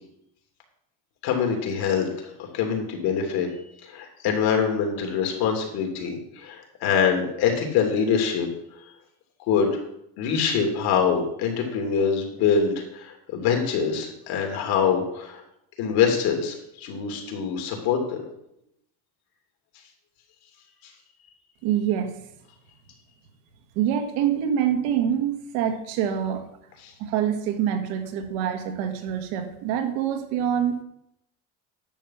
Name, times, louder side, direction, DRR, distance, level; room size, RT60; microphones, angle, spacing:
voice 1, 1.2-3.5 3.8-8.5 9.5-9.8 10.2-15.4 15.8-18.2 26.8-26.9, left 6 dB, 65° left, 3 dB, 2.9 m, -24 dB
voice 2, 21.6-22.1 23.8-26.4 27.0-30.8, right 9 dB, 85° right, 6 dB, 1.7 m, -25 dB
10.5 x 7.1 x 5.8 m, 0.78 s
cardioid pair, 135°, 39 cm